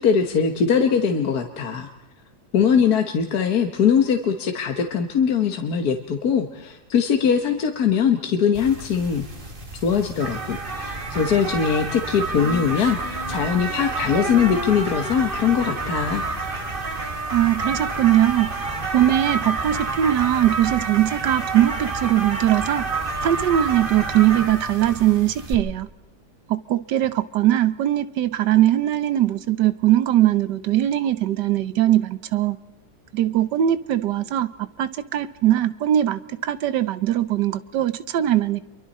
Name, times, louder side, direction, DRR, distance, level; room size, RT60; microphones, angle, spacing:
voice 1, 0.0-1.9 2.5-9.3 9.8-16.2, left 7 dB, 65° left, 5 dB, 1.8 m, -21 dB
sound 1, 8.5-25.5, right 3 dB, 30° right, 2.0 m, -29 dB
Female singing, 12.4-15.9, left 4 dB, 80° left, 3.6 m, -36 dB
voice 2, 17.3-18.5 18.9-22.8 23.2-25.9 26.5-32.6 33.1-34.5 34.8-38.6, right 12 dB, 90° right, 14 dB, 1.5 m, -20 dB
28.5 x 23.5 x 4.2 m, 1.0 s
omnidirectional pair, 1.8 m